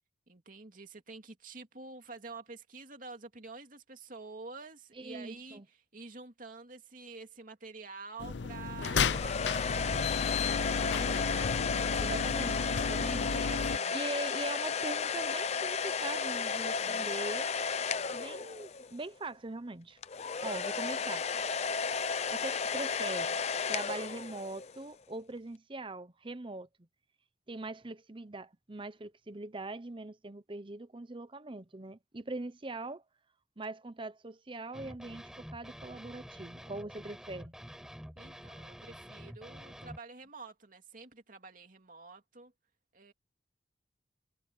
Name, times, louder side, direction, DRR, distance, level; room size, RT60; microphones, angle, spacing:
voice 1, 0.3-12.2 12.8-14.0 16.8-17.1 20.4-21.5 38.2-42.5 42.9-43.1, right 3 dB, 50° right, 2.7 m, -49 dB
voice 2, 5.0-5.6 10.9-11.4 12.0-13.3 13.9-17.5 18.1-20.0 20.4-21.2 22.3-23.4 23.7-26.7 27.5-33.0 33.6-37.5, right 2 dB, 30° right, 0.8 m, -42 dB
sound 1, 8.2-13.8, left 5 dB, 80° left, 0.6 m, -33 dB
sound 2, 8.8-19.0 20.0-24.8, left 5 dB, 35° left, 0.6 m, -33 dB
sound 3, 34.7-40.0, equal, 5° right, 5.4 m, -48 dB
head